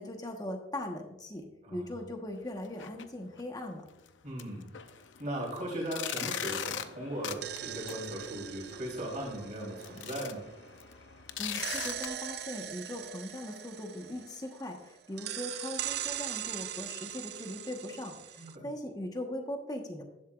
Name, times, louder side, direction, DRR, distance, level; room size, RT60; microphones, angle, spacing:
voice 1, 0.0-3.8 11.4-20.0, left 1 dB, 20° left, 3 dB, 1.2 m, -40 dB
voice 2, 1.6-2.0 4.2-4.7 5.2-10.4 18.4-18.7, right 1 dB, 40° right, -3 dB, 3.7 m, -38 dB
sound 1, 2.6-3.0 3.4-3.5 4.0-4.1 4.4-12.1, left 9 dB, 80° left, 0.6 m, -41 dB
sound 2, 7.2-10.9 11.6-14.8 15.2-18.6, right 11 dB, 55° right, 0.4 m, -41 dB
11.0 x 10.5 x 2.5 m, 0.95 s
head